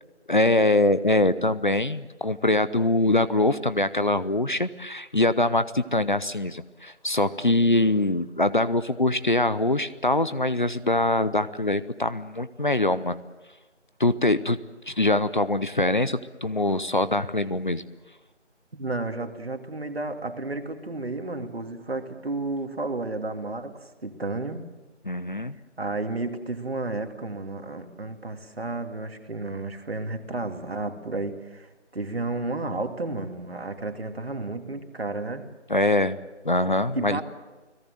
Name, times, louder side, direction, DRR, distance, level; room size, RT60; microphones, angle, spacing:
voice 1, 0.3-13.2 14.0-14.6 14.9-17.8 25.1-25.6 35.7-36.2 36.4-37.2, left 2 dB, 45° left, 15 dB, 0.7 m, -23 dB
voice 2, 18.7-24.7 25.8-35.5 36.9-37.2, right 2 dB, 55° right, 6 dB, 2.5 m, -32 dB
29.5 x 18.0 x 7.7 m, 1.2 s
figure-of-eight pair, 170°, 36 cm